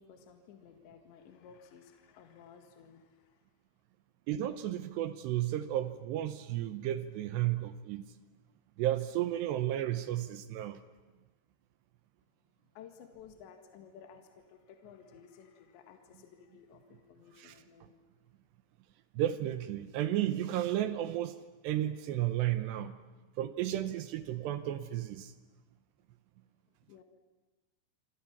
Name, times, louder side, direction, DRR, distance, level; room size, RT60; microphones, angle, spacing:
voice 1, 0.0-3.5 12.6-18.0 26.7-27.0, left 7 dB, 65° left, 5 dB, 3.7 m, -55 dB
voice 2, 4.3-8.1 8.8-10.8 17.4-17.9 19.1-23.0 23.4-25.3, right 12 dB, 75° right, 11 dB, 2.7 m, -33 dB
27.0 x 27.0 x 7.3 m, 1.2 s
omnidirectional pair, 5.8 m